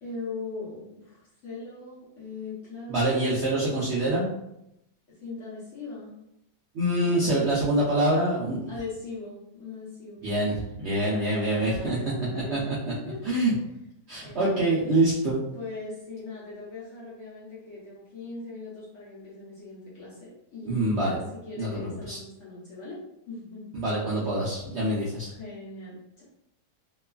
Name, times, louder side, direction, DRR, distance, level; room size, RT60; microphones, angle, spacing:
voice 1, 0.0-3.4 5.1-6.1 7.0-7.5 8.7-10.2 11.4-13.2 14.1-14.9 15.5-23.0 23.3-23.7 25.3-26.2, left 3 dB, 55° left, -8 dB, 1.0 m, -40 dB
voice 2, 2.9-4.4 6.7-8.6 10.2-12.0 12.5-12.9 13.2-13.5 14.1-15.4 20.6-21.2 21.6-22.2 23.7-25.3, right 1 dB, 70° right, -8 dB, 0.6 m, -25 dB
3.0 x 2.2 x 2.3 m, 0.82 s
omnidirectional pair, 1.8 m